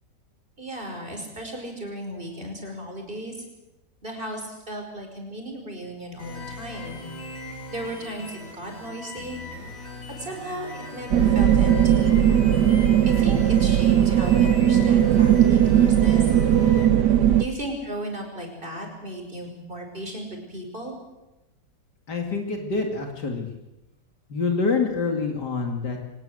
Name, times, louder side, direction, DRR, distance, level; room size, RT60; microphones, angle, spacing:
voice 1, 0.6-3.4 4.0-7.0 7.7-9.4 10.2-12.1 13.1-16.2 16.6-16.8 17.4-20.9, right 1 dB, 30° right, 3 dB, 5.3 m, -35 dB
sound 1, 6.2-16.9, left 2 dB, 50° left, 5.5 m, -39 dB
sound 2, 11.1-17.4, right 10 dB, 80° right, 1.7 m, -18 dB
voice 2, 22.1-23.5 24.3-26.0, left 4 dB, 75° left, 3 dB, 3.0 m, -26 dB
24.0 x 19.5 x 7.9 m, 0.98 s
omnidirectional pair, 1.8 m